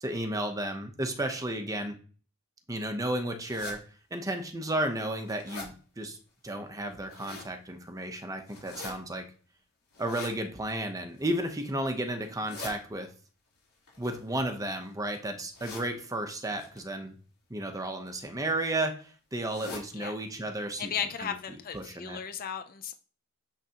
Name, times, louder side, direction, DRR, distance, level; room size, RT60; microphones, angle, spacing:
voice 1, 0.0-2.0 2.7-3.8 4.1-6.2 6.4-9.3 10.0-13.1 14.0-17.2 17.5-20.9 21.2-21.3 21.7-22.2, right 1 dB, 15° right, 0.8 m, -33 dB
sound 1, 3.5-3.8 4.4-4.5 4.9-5.7 6.8-7.5 8.5-8.9 9.9-10.3 11.1-11.5 12.2-12.7 13.8-14.8 15.5-15.9 16.6-16.8 17.8-18.1 18.4-18.5 18.8-18.9 19.4-19.9 20.3-20.4 20.7-20.8 21.3-21.4 21.7-21.8, left 3 dB, 70° left, 3.7 m, -43 dB
voice 2, 20.8-22.9, left 8 dB, 40° left, 0.5 m, -35 dB
6.9 x 5.8 x 2.9 m
head